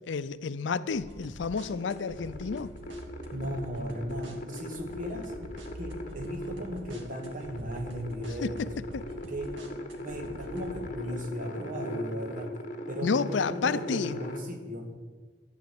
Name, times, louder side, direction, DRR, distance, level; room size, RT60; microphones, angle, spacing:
voice 1, 0.1-2.7 8.4-8.7 8.9-9.0 13.0-14.2, left 5 dB, 75° left, 0.5 m, -30 dB
sound 1, 0.9-10.9, equal, 90° right, 1.7 m, -45 dB
sound 2, 1.7-14.4, left 1 dB, 45° left, 1.3 m, -39 dB
voice 2, 3.3-5.3 5.8-8.7 9.3-9.6 10.0-12.5 12.9-14.9, equal, 45° right, 1.7 m, -37 dB
11.5 x 8.3 x 7.7 m
head